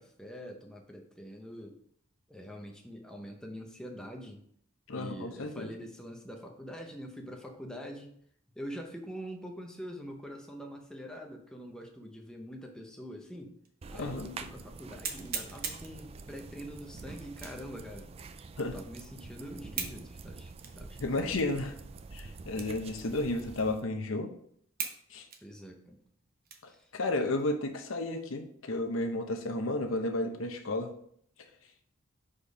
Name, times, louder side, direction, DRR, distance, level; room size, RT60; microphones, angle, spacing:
voice 1, 0.0-1.8 2.3-4.4 4.9-8.1 8.6-13.5 13.9-18.1 18.6-21.2 25.4-26.0 26.7-26.9, equal, 5° left, 1 dB, 0.7 m, -44 dB
voice 2, 4.9-5.7 13.9-14.3 18.6-18.7 21.0-21.7 22.1-24.3 25.1-25.3 26.6-30.9, left 2 dB, 80° left, 5 dB, 0.8 m, -32 dB
sound 1, 13.6-13.7 14.3-14.4 15.0-16.0 17.3-17.7 18.2-18.3 19.7-20.0 20.6-20.8 21.4-21.5 22.5-22.9 23.2-23.3 23.9-24.0 24.8-25.0 25.3-26.8 27.3-27.4 27.9-28.4, right 6 dB, 45° right, 0.9 m, -39 dB
sound 2, 13.8-23.8, right 4 dB, 30° right, 0.3 m, -47 dB
5.1 x 4.3 x 5.0 m, 0.65 s
head